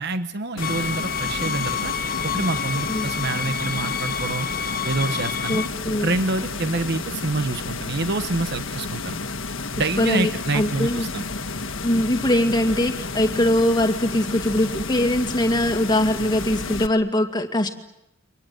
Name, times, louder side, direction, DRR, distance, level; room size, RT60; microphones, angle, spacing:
voice 1, 0.0-1.9 2.2-4.5 4.8-5.6 6.0-9.2 9.7-11.2, right 3 dB, 50° right, 9 dB, 1.0 m, -27 dB
sound 1, 0.6-16.9, left 3 dB, 60° left, 1.5 m, -31 dB
sound 2, 0.6-5.7, left 6 dB, 40° left, 1.1 m, -29 dB
voice 2, 5.5-6.1 10.0-11.1 11.8-17.7, left 1 dB, 20° left, 5 dB, 2.2 m, -22 dB
29.5 x 25.0 x 7.9 m, 0.86 s
head